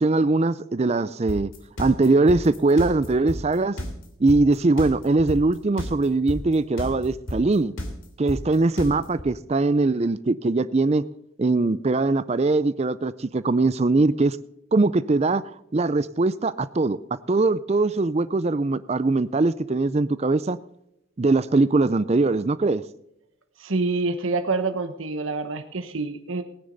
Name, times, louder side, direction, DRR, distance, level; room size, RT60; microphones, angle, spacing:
voice 1, 0.0-1.5 1.8-3.8 4.2-7.7 8.2-11.0 11.4-14.4 14.7-15.4 15.7-17.0 17.3-20.6 21.2-22.8, right 3 dB, 30° right, 0.4 m, -21 dB
sound 1, 1.3-9.2, equal, 75° left, 3.0 m, -31 dB
voice 2, 23.6-26.4, right 3 dB, 75° right, 1.2 m, -27 dB
18.5 x 9.9 x 4.0 m
head